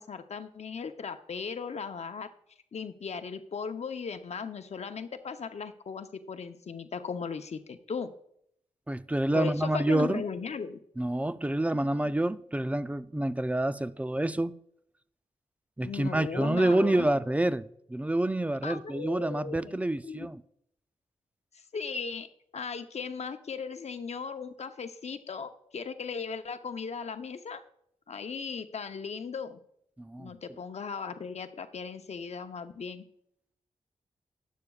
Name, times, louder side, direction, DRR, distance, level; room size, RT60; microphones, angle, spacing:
voice 1, 0.0-2.3 2.7-8.1 9.3-10.8 12.0-12.1 15.8-17.1 18.6-19.7 20.0-20.3 21.7-22.3 22.5-27.6 28.1-29.6 30.2-33.1, left 5 dB, 60° left, 0.8 m, -37 dB
voice 2, 8.9-10.2 11.0-14.5 15.8-20.4 30.0-30.3, right 1 dB, 10° right, 0.4 m, -28 dB
12.0 x 10.0 x 2.4 m
cardioid pair, 55°, 13 cm